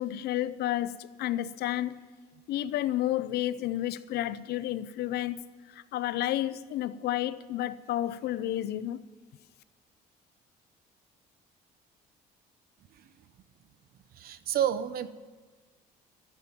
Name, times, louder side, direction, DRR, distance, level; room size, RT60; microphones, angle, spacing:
voice 1, 0.0-2.0 2.5-5.4 5.7-9.0, left 13 dB, 70° left, 0.6 m, -31 dB
voice 2, 14.2-15.1, right 10 dB, 60° right, 0.9 m, -29 dB
13.5 x 9.7 x 7.2 m
cardioid pair, 110°, 17 cm